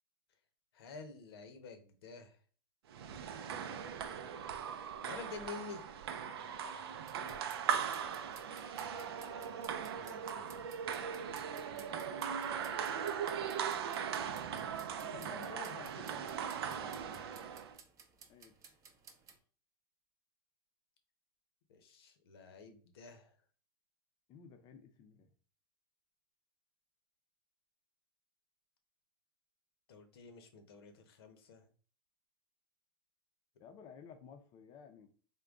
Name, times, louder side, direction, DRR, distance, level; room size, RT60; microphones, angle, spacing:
voice 1, 0.7-2.4 5.0-5.8 8.2-8.4 8.7-10.5 16.7-17.0 21.7-23.3 29.9-31.7, left 5 dB, 80° left, 7 dB, 0.8 m, -50 dB
sound 1, 2.9-17.8, right 7 dB, 90° right, 0.5 m, -39 dB
sound 2, 7.1-19.4, right 5 dB, 25° right, 0.6 m, -59 dB
voice 2, 7.2-7.8 11.9-12.5 13.8-14.2 14.4-16.3 18.3-18.6 24.3-25.3 33.6-35.1, left 7 dB, 35° left, 7 dB, 0.5 m, -54 dB
3.7 x 2.2 x 3.5 m, 0.41 s
supercardioid pair, 135°, 13 cm